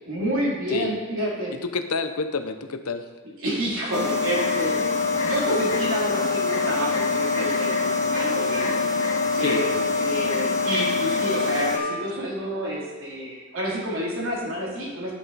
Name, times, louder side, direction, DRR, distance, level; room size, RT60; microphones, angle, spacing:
voice 1, 0.1-1.5 3.4-8.8 9.4-9.7 10.0-15.1, equal, 65° right, -5 dB, 3.1 m, -29 dB
voice 2, 1.5-3.0 9.3-10.2, left 4 dB, 90° left, 8 dB, 0.9 m, -29 dB
sound 1, 3.9-11.8, left 4 dB, 65° left, 2.4 m, -24 dB
10.5 x 9.7 x 4.2 m, 1.3 s
head